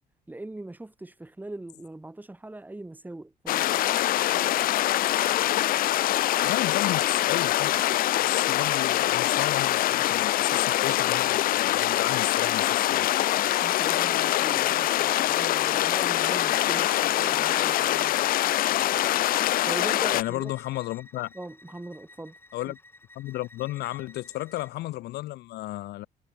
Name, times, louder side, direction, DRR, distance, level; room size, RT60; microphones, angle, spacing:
voice 1, 0.3-4.0 13.6-18.2 19.6-20.5 21.3-22.3 22.6-22.7, right 2 dB, 10° right, 4.1 m, -40 dB
sound 1, 3.5-20.2, left 14 dB, 60° left, 0.5 m, -24 dB
voice 2, 6.4-7.8 8.2-13.1 20.1-21.3 22.5-22.8 23.1-26.1, left 17 dB, 75° left, 1.4 m, -33 dB
Bowed string instrument, 15.9-24.7, left 2 dB, 15° left, 3.1 m, -51 dB
cardioid pair, 110°, 17 cm